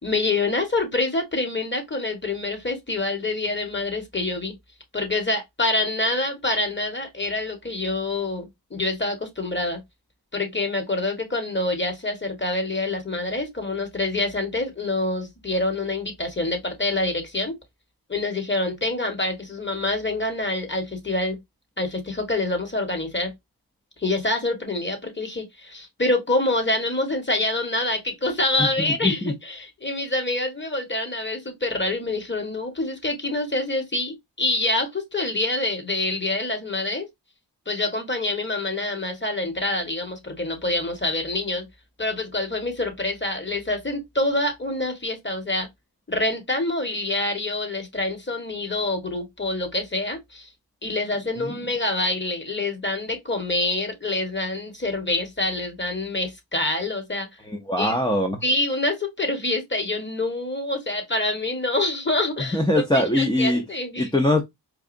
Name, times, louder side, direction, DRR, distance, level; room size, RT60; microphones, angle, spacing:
voice 1, 0.0-4.5 4.9-9.8 10.3-17.6 18.1-21.4 21.8-23.3 24.0-37.1 37.7-41.7 42.0-45.7 46.1-50.5 50.8-57.3 57.8-58.0 58.4-64.1, left 2 dB, 25° left, 1.5 m, -26 dB
voice 2, 28.6-29.3 51.4-51.5 57.5-58.4 62.5-63.6 64.0-64.4, left 1 dB, 10° left, 0.7 m, -22 dB
4.7 x 2.4 x 2.6 m
cardioid pair, 55°, 42 cm